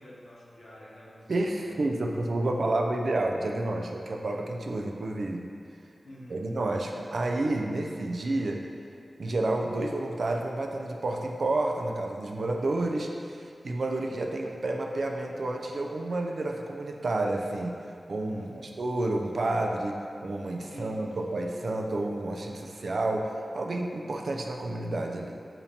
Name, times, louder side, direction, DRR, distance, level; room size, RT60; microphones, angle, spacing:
voice 1, 0.0-1.8 6.0-6.5 18.3-18.8 20.6-21.2, equal, 85° left, -6 dB, 0.9 m, -48 dB
voice 2, 1.3-5.5 6.3-8.6 9.2-20.0 20.2-25.3, right 2 dB, 70° right, 2 dB, 0.4 m, -30 dB
6.9 x 2.8 x 2.7 m, 2.4 s
wide cardioid pair, 70°, 0 cm